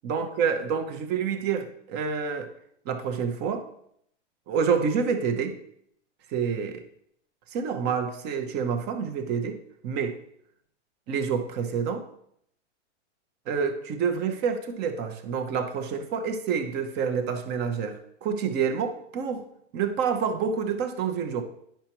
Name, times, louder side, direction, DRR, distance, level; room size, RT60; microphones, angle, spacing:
voice 1, 0.0-2.5 2.8-3.7 4.5-5.6 6.3-6.8 7.5-10.2 11.1-12.1 13.5-19.5 19.7-21.4, right 6 dB, 30° right, 7 dB, 0.8 m, -28 dB
10.0 x 5.8 x 3.0 m, 0.70 s
hypercardioid pair, 130°, 35 cm